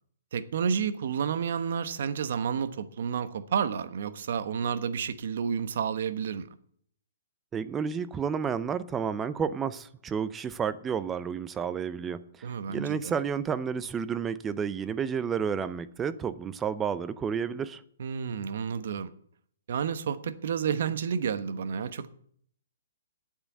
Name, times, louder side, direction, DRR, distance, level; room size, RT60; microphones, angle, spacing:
voice 1, 0.3-6.5 12.4-13.1 18.0-19.1 19.7-22.1, right 7 dB, 60° right, 1.1 m, -30 dB
voice 2, 7.5-17.8, right 7 dB, 15° right, 0.5 m, -31 dB
8.8 x 8.8 x 8.3 m
hypercardioid pair, 150°, 0 cm